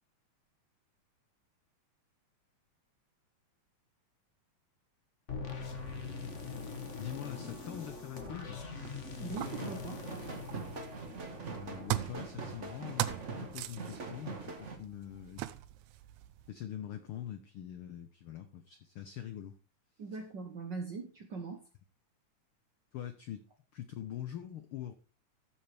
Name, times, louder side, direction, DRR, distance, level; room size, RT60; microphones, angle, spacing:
sound 1, 5.3-11.4, left 5 dB, 40° left, 1.0 m, -43 dB
sound 2, 5.6-16.5, right 15 dB, 80° right, 2.1 m, -43 dB
voice 1, 7.0-8.6 11.6-13.1 13.4-15.5 16.5-19.6 22.9-23.5 23.7-24.9, left 11 dB, 85° left, 9 dB, 1.2 m, -43 dB
voice 2, 9.2-10.1 20.0-21.6, right 4 dB, 60° right, 4 dB, 1.2 m, -41 dB
sound 3, 9.4-14.8, right 4 dB, 40° right, 1.1 m, -43 dB
13.5 x 7.3 x 3.4 m, 0.32 s
omnidirectional pair, 3.4 m